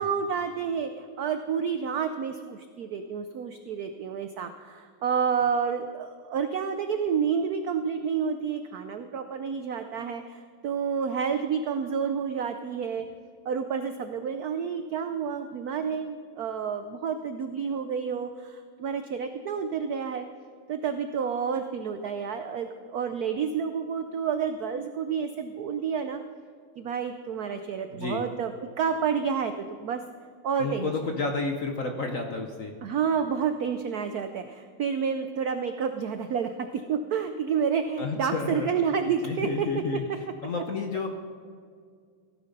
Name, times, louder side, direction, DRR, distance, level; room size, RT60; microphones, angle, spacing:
voice 1, 0.0-13.1 13.4-20.2 20.7-26.2 26.8-28.5 28.8-30.0 30.4-31.2 32.8-40.2, right 6 dB, 85° right, 8 dB, 0.8 m, -29 dB
voice 2, 30.6-32.7 38.0-38.7 39.2-40.0 40.4-41.1, left 4 dB, 55° left, 4 dB, 0.9 m, -31 dB
15.5 x 9.3 x 5.3 m, 2.1 s
omnidirectional pair, 2.4 m